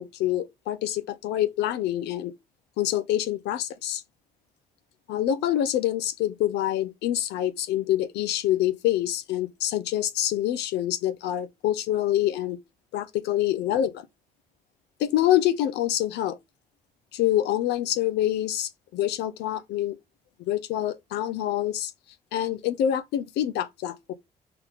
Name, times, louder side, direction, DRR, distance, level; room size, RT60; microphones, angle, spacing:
voice 1, 0.0-2.3 2.8-4.0 5.1-12.6 12.9-14.1 15.0-16.4 17.1-20.0 20.5-21.9 22.3-24.1, left 12 dB, 60° left, 0.9 m, -26 dB
5.6 x 3.9 x 5.3 m
figure-of-eight pair, 45°, 20 cm